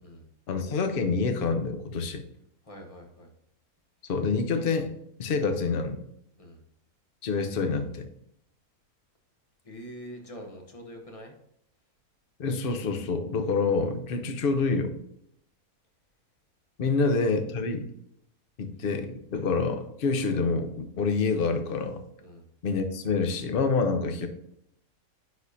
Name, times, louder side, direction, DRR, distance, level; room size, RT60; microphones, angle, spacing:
voice 1, 0.5-2.2 4.1-4.9 5.2-6.0 7.2-8.1 12.4-15.0 16.8-17.9 18.6-22.0 22.6-24.3, left 4 dB, 45° left, 7 dB, 0.8 m, -27 dB
voice 2, 2.6-3.3 6.4-6.6 9.6-11.3 16.9-17.0 22.2-22.5, equal, 25° left, 2 dB, 1.0 m, -44 dB
9.7 x 4.2 x 2.7 m, 0.74 s
omnidirectional pair, 1.5 m